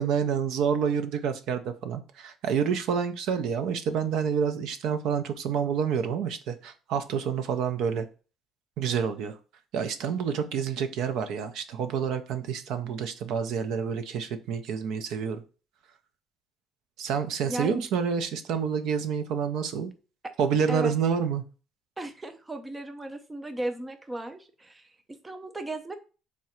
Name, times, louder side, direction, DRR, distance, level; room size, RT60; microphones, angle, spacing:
voice 1, 0.0-8.1 8.8-9.3 9.7-15.4 17.0-19.9 20.4-21.4, right 7 dB, 70° right, 9 dB, 0.5 m, -28 dB
voice 2, 17.5-17.8 20.2-20.3 20.7-20.9 22.0-25.9, right 1 dB, 10° right, 7 dB, 0.4 m, -35 dB
3.6 x 2.1 x 4.3 m, 0.35 s
cardioid pair, 150°, 0 cm